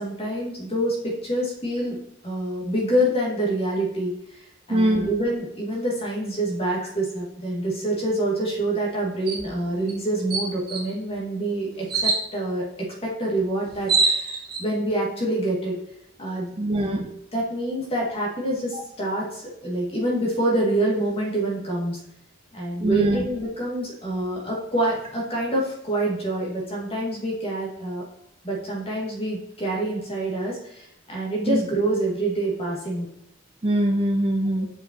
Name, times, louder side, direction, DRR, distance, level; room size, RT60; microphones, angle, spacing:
voice 1, 0.0-2.0 2.2-12.6 13.0-15.7 16.2-16.5 17.3-22.0 22.5-28.0 28.4-33.1 34.6-34.7, right 1 dB, 30° left, -4 dB, 2.1 m, -26 dB
voice 2, 4.7-5.1 16.6-17.1 22.8-23.2 31.5-31.6 33.6-34.7, right 1 dB, 30° right, 3 dB, 0.6 m, -22 dB
sound 1, 9.3-9.5 9.9-10.0 10.3-10.8 11.9-12.2 13.4-13.5 13.7-14.6, right 4 dB, 50° right, 1.4 m, -23 dB
6.7 x 5.3 x 2.9 m, 0.80 s
head